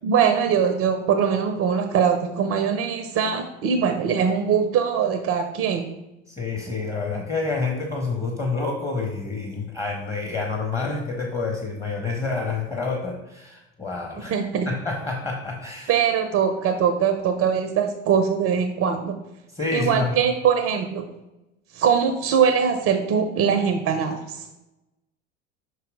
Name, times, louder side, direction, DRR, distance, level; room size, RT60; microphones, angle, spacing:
voice 1, 0.0-5.9 14.2-14.7 15.9-19.2 19.7-21.1 21.7-24.5, right 7 dB, 35° right, 7 dB, 0.6 m, -22 dB
voice 2, 6.3-14.3 14.6-16.0 19.5-20.2, left 3 dB, 15° left, 1 dB, 1.0 m, -28 dB
5.7 x 4.7 x 3.5 m, 0.96 s
figure-of-eight pair, 70°, 38 cm